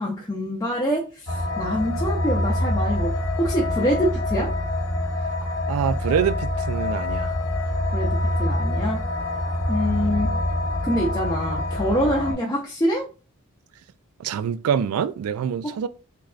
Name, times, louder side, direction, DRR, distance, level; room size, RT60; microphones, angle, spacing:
voice 1, 0.0-4.5 7.9-9.0 9.7-10.3 10.8-13.1, equal, 15° left, 0.5 m, -25 dB
sound 1, 1.3-12.3, left 1 dB, 75° left, 1.0 m, -25 dB
voice 2, 5.7-7.3 14.2-15.9, right 8 dB, 85° right, 0.3 m, -25 dB
3.7 x 3.1 x 2.4 m
head